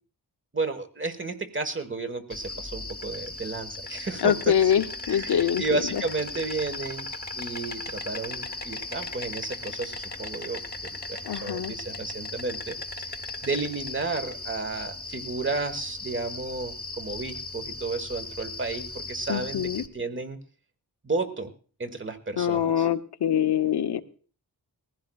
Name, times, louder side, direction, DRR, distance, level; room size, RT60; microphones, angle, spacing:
voice 1, 0.5-4.5 5.0-7.1 7.4-20.4 21.0-21.5 21.8-22.9, right 3 dB, 30° right, 8 dB, 1.3 m, -32 dB
Insect, 2.3-19.9, left 3 dB, 25° left, 1.0 m, -37 dB
voice 2, 4.2-5.6 5.9-6.0 11.2-11.7 19.3-19.8 22.4-24.0, left 9 dB, 75° left, 9 dB, 0.8 m, -24 dB
21.0 x 15.0 x 2.3 m, 0.40 s
wide cardioid pair, 115°, 40 cm